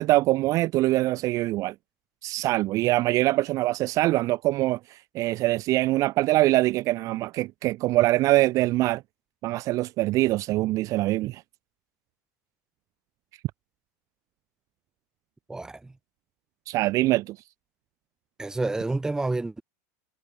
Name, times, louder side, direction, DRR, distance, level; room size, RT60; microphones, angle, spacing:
voice 1, 0.0-1.7 2.2-9.0 9.4-11.4 16.7-17.4, right 18 dB, 40° right, 0.5 m, -23 dB
voice 2, 15.5-15.9 18.4-19.6, right 2 dB, 5° right, 1.2 m, -29 dB
supercardioid pair, 145°, 9 cm